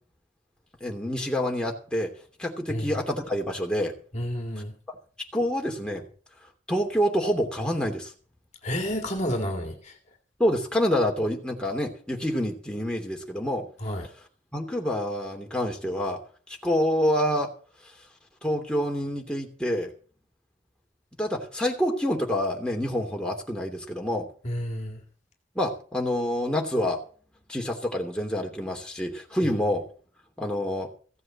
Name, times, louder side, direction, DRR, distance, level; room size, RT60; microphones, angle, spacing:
voice 1, 0.8-2.1 2.4-3.9 5.3-6.0 6.7-8.1 10.4-13.6 14.5-16.2 16.6-17.5 18.4-19.9 21.2-24.3 25.5-27.0 27.5-29.8 30.4-30.9, equal, 5° left, 1 dB, 2.8 m, -27 dB
voice 2, 4.1-4.7 8.6-9.9 13.8-14.1 24.4-25.0, equal, 35° left, 3 dB, 2.1 m, -30 dB
15.5 x 7.7 x 7.6 m, 0.41 s
head